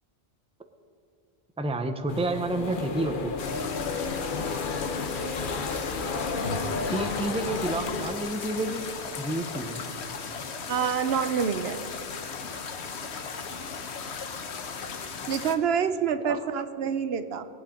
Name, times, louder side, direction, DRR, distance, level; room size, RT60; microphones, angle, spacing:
voice 1, 1.6-3.4 6.9-8.8 9.2-9.8 16.2-16.4, right 2 dB, 5° right, 7 dB, 0.6 m, -30 dB
sound 1, 2.1-8.1, left 4 dB, 55° left, 1.0 m, -32 dB
sound 2, 3.4-15.6, left 5 dB, 85° left, 1.2 m, -37 dB
voice 2, 10.7-11.8 15.3-17.5, right 7 dB, 70° right, 10 dB, 0.9 m, -27 dB
20.5 x 8.3 x 5.2 m, 2.6 s
omnidirectional pair, 1.1 m